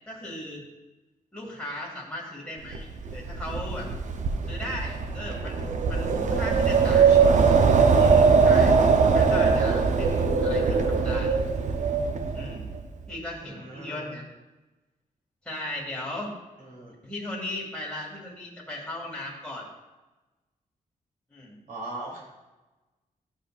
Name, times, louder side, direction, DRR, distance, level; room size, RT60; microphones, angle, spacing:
voice 1, 0.1-0.6 1.3-3.9 4.5-5.6 5.9-7.1 8.0-8.8 9.1-11.4 12.3-12.7 13.1-14.3 15.4-16.3 17.0-19.7 21.3-21.5, left 1 dB, 5° left, -5 dB, 2.1 m, -37 dB
Wind, 2.7-12.8, right 5 dB, 60° right, 0.7 m, -21 dB
voice 2, 6.9-7.5 10.5-10.8 13.4-14.1 16.6-16.9 21.7-22.2, right 2 dB, 90° right, -4 dB, 3.1 m, -40 dB
13.0 x 6.6 x 2.5 m, 1.1 s
wide cardioid pair, 160°, 14 cm